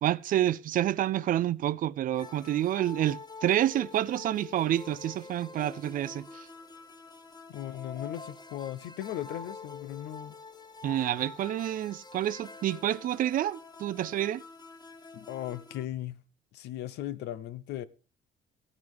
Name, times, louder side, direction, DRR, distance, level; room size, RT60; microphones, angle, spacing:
voice 1, 0.0-6.5 10.8-14.4, right 12 dB, 55° right, 0.5 m, -28 dB
sound 1, 2.1-15.8, left 4 dB, 25° left, 1.2 m, -46 dB
voice 2, 7.5-10.3 15.1-16.2 16.5-17.9, left 12 dB, 80° left, 0.7 m, -37 dB
15.0 x 9.6 x 3.5 m
cardioid pair, 110°, 17 cm